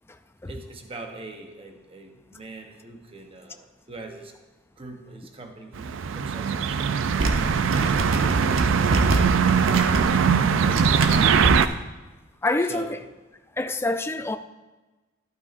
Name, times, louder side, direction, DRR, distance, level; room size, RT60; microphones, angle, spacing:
voice 1, 0.5-4.3 4.8-6.9 7.5-9.3 10.0-11.6 12.7-13.0, right 2 dB, 30° right, 0.8 m, -42 dB
sound 1, 5.8-11.7, right 6 dB, 65° right, 0.4 m, -21 dB
sound 2, 7.0-11.7, right 2 dB, 85° right, 0.9 m, -27 dB
voice 2, 12.4-12.9 13.6-14.4, left 2 dB, 10° left, 0.4 m, -26 dB
12.0 x 12.0 x 2.5 m
head